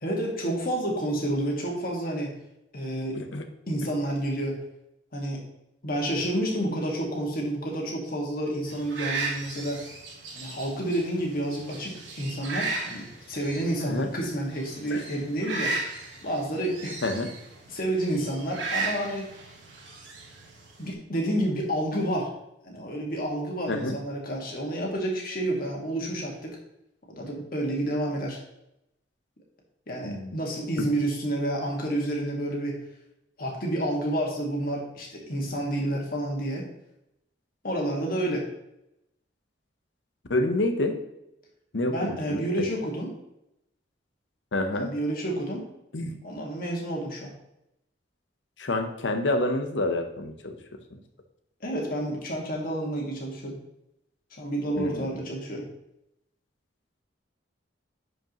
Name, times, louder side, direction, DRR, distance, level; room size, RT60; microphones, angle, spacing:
voice 1, 0.0-2.3 2.7-3.2 3.7-4.6 5.1-5.4 5.8-9.8 10.3-15.7 16.2-17.0 17.7-19.3 20.8-22.3 22.6-26.6 27.1-28.4 29.9-32.7 33.4-36.7 37.6-38.5 41.9-43.1 44.7-45.7 46.2-47.3 51.6-53.5 54.4-55.6, right 1 dB, 50° left, -1 dB, 1.9 m, -29 dB
sound 1, 8.7-20.9, right 3 dB, 80° right, 1.6 m, -36 dB
voice 2, 23.7-24.0 30.0-30.3 30.8-30.9 40.3-41.0 41.7-42.7 44.5-44.9 45.9-46.2 48.6-51.0 54.8-55.2, left 2 dB, 85° left, 7 dB, 0.9 m, -28 dB
10.5 x 5.1 x 3.0 m, 0.84 s
head